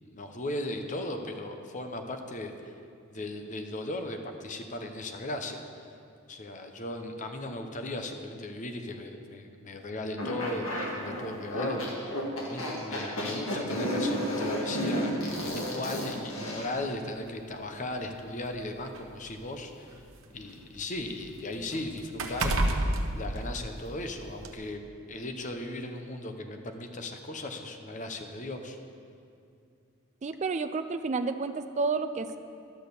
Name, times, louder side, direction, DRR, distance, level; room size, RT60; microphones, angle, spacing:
voice 1, 0.0-2.7 3.1-5.9 6.3-19.9 20.3-22.5 22.8-28.8, left 1 dB, 35° left, 5 dB, 0.8 m, -37 dB
sound 1, 10.2-16.8, equal, 70° left, 1.9 m, -32 dB
sound 2, 15.4-15.6 16.6-16.7 17.2-17.3 18.2-20.2 20.6-24.0 24.4-24.6, right 1 dB, 75° right, 0.9 m, -31 dB
voice 2, 30.2-32.4, right 4 dB, 35° right, 9 dB, 0.4 m, -30 dB
12.0 x 6.2 x 6.8 m, 2.4 s
head